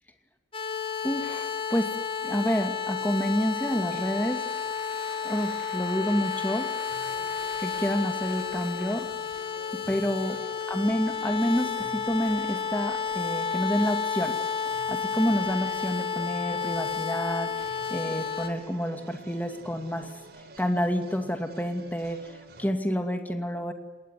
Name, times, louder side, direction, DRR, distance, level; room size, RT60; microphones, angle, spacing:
sound 1, 0.5-18.5, left 6 dB, 30° left, 2.9 m, -31 dB
voice 1, 1.0-1.9 2.2-4.5 5.2-6.7 7.6-9.1 9.7-10.4 10.7-14.4 14.7-20.1 20.6-22.3 22.6-23.7, equal, 10° left, 5 dB, 2.3 m, -28 dB
sound 2, 3.3-9.1, right 1 dB, 5° right, 4.2 m, -50 dB
sound 3, 6.9-22.7, right 2 dB, 60° right, 4.1 m, -49 dB
28.0 x 20.0 x 9.8 m, 1.2 s
head